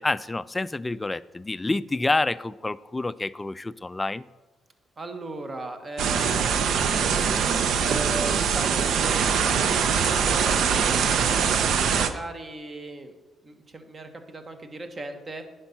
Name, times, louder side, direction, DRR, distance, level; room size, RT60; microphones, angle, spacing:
voice 1, 0.0-4.3, left 2 dB, 20° left, 16 dB, 0.3 m, -28 dB
voice 2, 5.0-6.6 7.1-9.5 9.7-11.5 11.9-13.1 13.4-15.4, right 2 dB, 35° right, 7 dB, 1.2 m, -37 dB
sound 1, 6.0-12.1, right 6 dB, 70° right, 0.7 m, -23 dB
10.0 x 5.3 x 5.8 m, 1.2 s
cardioid pair, 90°, 0 cm